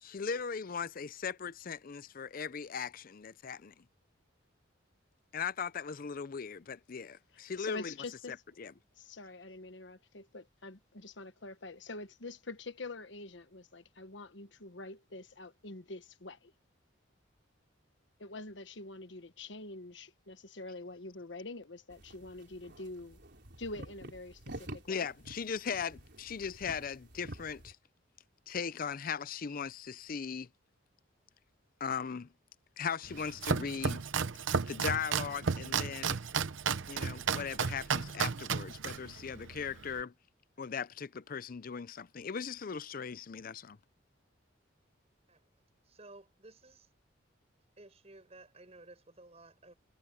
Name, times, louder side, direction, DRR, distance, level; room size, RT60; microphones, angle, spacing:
voice 1, 0.0-3.7 5.3-7.9 8.3-8.7 24.9-27.8 28.5-30.5 31.8-32.3 32.8-34.0 34.7-36.2 36.9-40.1 40.6-43.8, left 6 dB, 45° left, 0.5 m, -38 dB
voice 2, 7.6-8.4 9.0-16.5 18.2-23.2 23.6-25.1, left 2 dB, 70° left, 1.4 m, -45 dB
sound 1, 21.9-27.7, right 1 dB, 60° right, 4.4 m, -49 dB
Domestic sounds home sounds, 33.0-40.0, right 5 dB, 75° right, 0.8 m, -34 dB
voice 3, 45.8-46.9 47.8-49.7, right 2 dB, 35° right, 6.2 m, -55 dB
head